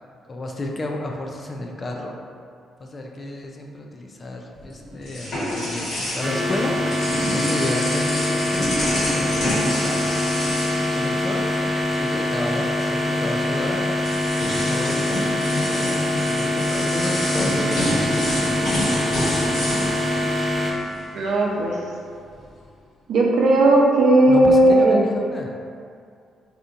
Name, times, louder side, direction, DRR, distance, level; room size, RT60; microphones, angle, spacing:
voice 1, 0.3-2.1 2.8-8.7 9.1-10.3 10.6-11.5 11.9-13.9 14.7-15.6 16.3-18.1 24.3-25.5, left 2 dB, 35° left, 1 dB, 0.4 m, -31 dB
sound 1, 4.6-11.8 12.1-12.3 13.4-13.5 14.0-21.1, equal, 70° left, 1.4 m, -28 dB
sound 2, 6.2-20.7, left 1 dB, 10° right, 0.8 m, -24 dB
voice 2, 21.1-21.8 23.1-25.0, right 1 dB, 65° right, -2 dB, 0.6 m, -16 dB
3.6 x 2.8 x 2.5 m, 2.4 s
cardioid pair, 90°, 0 cm